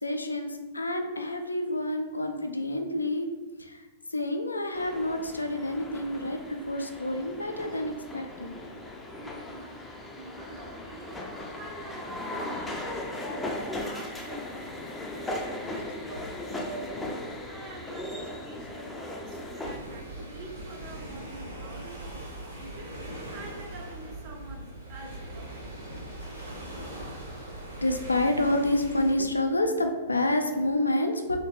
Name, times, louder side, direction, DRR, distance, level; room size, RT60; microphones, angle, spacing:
voice 1, 0.0-3.3 3.6-8.5 27.8-31.4, left 1 dB, 80° left, 5 dB, 0.3 m, -28 dB
sound 1, 4.7-19.8, left 1 dB, 10° left, 0.4 m, -37 dB
voice 2, 9.2-9.8 10.1-15.4 15.7-17.1 17.5-23.0 23.3-25.7, right 2 dB, 35° right, 1 dB, 0.6 m, -47 dB
sound 2, 19.6-29.1, right 1 dB, 85° right, 1.5 m, -40 dB
3.2 x 2.8 x 2.8 m, 1.2 s
figure-of-eight pair, 105°, 0 cm